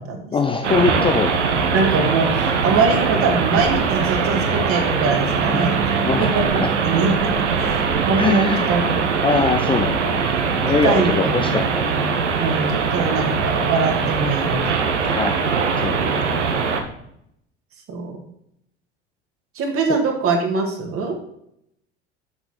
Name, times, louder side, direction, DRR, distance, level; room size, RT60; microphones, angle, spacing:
voice 1, 0.3-1.8 5.8-6.7 8.2-10.2 10.5-12.0 14.9-16.3 19.9-20.0, left 5 dB, 15° left, 6 dB, 0.5 m, -23 dB
sound 1, 0.6-16.8, right 5 dB, 75° right, 1.0 m, -21 dB
voice 2, 1.7-5.9 6.3-7.3 7.6-8.8 10.8-11.7 11.9-12.0 12.4-14.7 15.0-15.2 16.2-16.3 17.9-18.1 19.6-21.2, right 4 dB, 40° right, 2 dB, 1.9 m, -23 dB
Bass guitar, 5.4-11.6, right 8 dB, 60° right, 2.1 m, -34 dB
7.1 x 6.0 x 4.3 m, 0.75 s
figure-of-eight pair, 70°, 35 cm